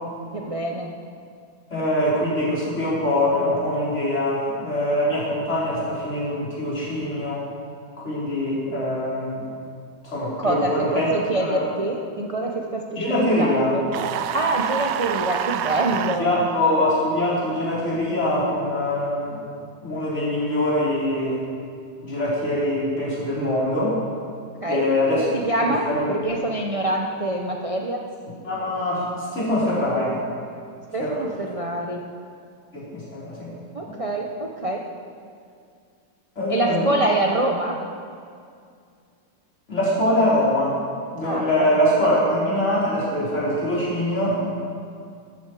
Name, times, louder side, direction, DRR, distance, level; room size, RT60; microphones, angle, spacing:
voice 1, 0.3-0.9 10.2-13.9 14.3-16.4 24.6-25.8 26.1-28.0 30.9-32.0 33.7-34.8 36.5-37.8 41.2-41.7, right 1 dB, 50° right, 1 dB, 0.4 m, -26 dB
voice 2, 1.7-7.5 8.0-9.5 10.0-11.1 11.5-11.6 12.9-13.8 16.2-19.4 19.8-21.4 22.0-24.0 24.7-25.2 25.6-26.1 28.4-30.2 31.0-31.3 32.7-33.5 33.9-34.0 36.3-36.9 39.7-40.8 41.1-44.4, left 1 dB, 40° left, -8 dB, 5.0 m, -23 dB
sound 1, 13.9-16.2, right 10 dB, 80° right, 1.3 m, -27 dB
14.5 x 13.5 x 4.8 m, 2.3 s
omnidirectional pair, 2.0 m